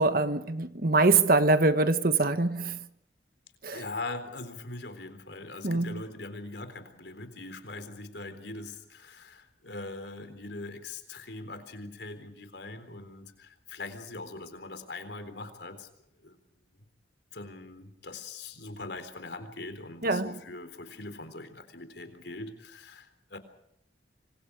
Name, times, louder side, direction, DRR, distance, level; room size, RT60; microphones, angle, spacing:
voice 1, 0.0-2.8 3.6-3.9 5.6-6.0 20.0-20.4, right 3 dB, 50° right, 1.4 m, -24 dB
voice 2, 3.7-15.9 16.2-16.4 17.3-23.4, left 2 dB, 65° left, 3.9 m, -41 dB
26.0 x 26.0 x 4.9 m
head